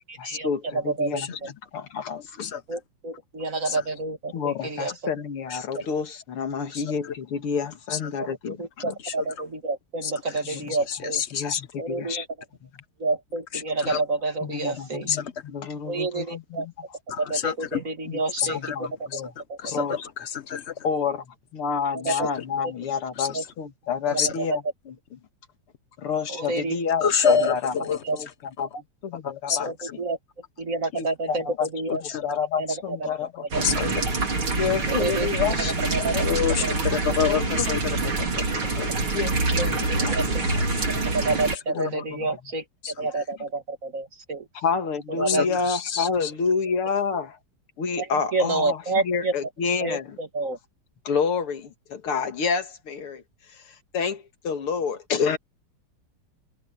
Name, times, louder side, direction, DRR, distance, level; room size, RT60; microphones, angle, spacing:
voice 1, 0.2-2.5 4.3-8.9 10.5-10.7 11.3-12.3 14.4-16.7 18.0-19.3 19.6-20.1 20.8-25.2 26.0-27.7 28.1-29.7 30.9-31.7 32.0-33.8 34.5-36.6 37.2-37.8 38.2-38.3 39.1-40.5 41.7-42.3 44.5-47.4 47.8-50.2 51.0-55.4, left 6 dB, 80° left, 2.8 m, -29 dB
voice 2, 0.7-1.2 2.7-4.9 8.2-11.2 11.8-12.3 13.0-15.1 15.9-16.7 17.2-19.1 19.5-19.8 21.9-22.3 23.3-23.4 24.1-24.5 26.3-26.8 27.2-27.5 27.8-28.2 29.6-30.2 30.6-32.0 32.6-33.0 33.5-33.6 34.9-35.3 35.9-36.1 36.6-36.7 39.6-40.4 41.1-42.6 43.0-44.5 45.2-45.6 48.0-48.1 48.3-49.3 49.8-50.6, right 3 dB, 40° right, 2.0 m, -29 dB
voice 3, 6.7-7.1 7.9-8.0 9.0-9.1 10.0-10.1 10.4-10.6 10.9-11.6 13.5-14.0 15.1-15.3 17.1-17.8 18.4-19.2 19.6-20.8 22.1-22.2 23.2-23.3 24.2-24.3 27.0-27.5 27.8-28.2 29.5-29.7 31.9-32.2 33.6-33.9 36.2-38.9 42.8-43.2 45.2-46.3, left 7 dB, 55° left, 0.7 m, -28 dB
sound 1, 33.5-41.6, right 3 dB, 70° right, 4.7 m, -25 dB
omnidirectional pair, 2.4 m